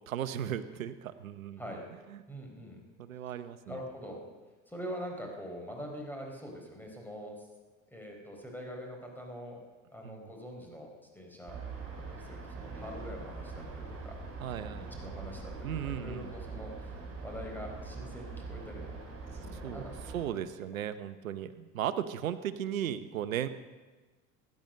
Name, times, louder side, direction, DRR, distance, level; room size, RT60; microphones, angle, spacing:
voice 1, 0.1-1.6 2.1-2.2 3.0-3.8 10.0-10.2 14.4-14.9 15.6-16.3 19.6-19.8 20.1-23.5, right 10 dB, 85° right, 13 dB, 0.9 m, -36 dB
voice 2, 2.3-2.8 3.6-4.2 4.7-7.5 7.9-9.6 9.9-10.9 11.1-11.6 12.1-14.2 14.5-16.9 17.2-19.0 19.3-20.4, equal, 5° left, 1 dB, 4.4 m, -44 dB
sound 1, 11.5-20.2, right 4 dB, 35° right, 5.6 m, -43 dB
15.5 x 11.0 x 6.4 m, 1.3 s
hypercardioid pair, 75°, 40 cm